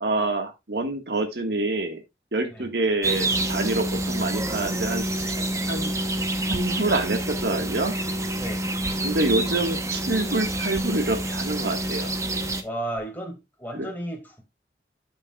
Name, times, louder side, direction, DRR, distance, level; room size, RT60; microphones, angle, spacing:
voice 1, 0.0-2.0 2.3-5.0 5.7-5.9 6.5-7.9 9.0-12.1 13.8-13.9, right 2 dB, 70° right, 1.6 m, -26 dB
sound 1, 3.0-12.6, right 1 dB, 15° right, 0.8 m, -27 dB
sound 2, 6.5-7.6 8.1-8.2 8.8-9.7 10.6-13.1, right 1 dB, 40° right, 3.9 m, -42 dB
voice 2, 8.4-8.7 12.6-14.4, right 1 dB, 10° left, 2.1 m, -34 dB
8.9 x 8.0 x 2.3 m
head